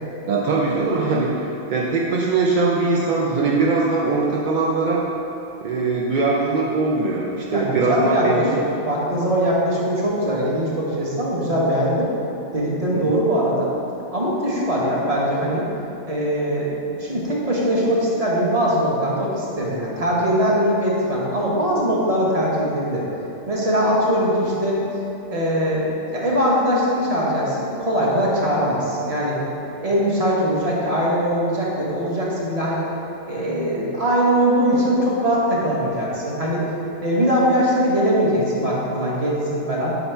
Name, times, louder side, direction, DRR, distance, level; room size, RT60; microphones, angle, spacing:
voice 1, 0.3-5.0 5.6-8.4 13.0-13.1, right 3 dB, 60° right, -4 dB, 0.5 m, -21 dB
voice 2, 7.5-12.1 12.5-13.7 14.1-15.7 16.1-16.7 17.0-23.0 23.5-24.8 25.3-29.4 29.8-32.9 33.3-36.7 37.0-40.0, equal, 30° right, -5 dB, 1.0 m, -21 dB
5.6 x 4.1 x 4.4 m, 3.0 s
omnidirectional pair, 1.3 m